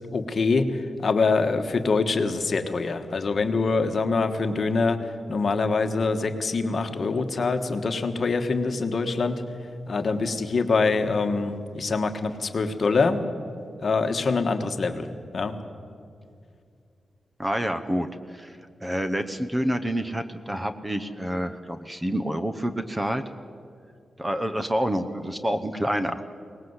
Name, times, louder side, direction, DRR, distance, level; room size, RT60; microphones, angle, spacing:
voice 1, 0.1-9.4 9.9-13.2 13.8-15.6, left 4 dB, 45° left, 7 dB, 1.4 m, -25 dB
voice 2, 17.4-23.2 24.2-26.2, equal, 10° right, 9 dB, 0.8 m, -28 dB
23.5 x 19.5 x 8.1 m, 2.4 s
wide cardioid pair, 160°, 0 cm